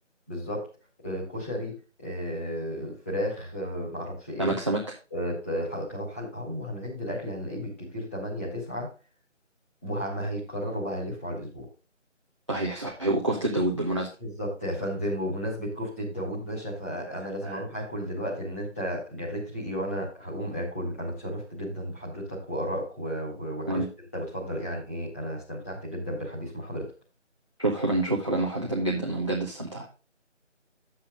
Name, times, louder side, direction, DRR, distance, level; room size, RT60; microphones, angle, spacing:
voice 1, 0.3-0.7 1.0-1.7 2.0-4.5 5.1-8.9 9.8-11.7 14.2-23.8 24.1-26.9, equal, 10° left, -7 dB, 1.9 m, -33 dB
voice 2, 4.4-4.8 12.5-14.1 17.4-17.6 23.7-23.9 27.6-29.9, right 2 dB, 25° right, -4 dB, 0.9 m, -27 dB
9.2 x 7.4 x 3.8 m, 0.32 s
figure-of-eight pair, 165°, 37 cm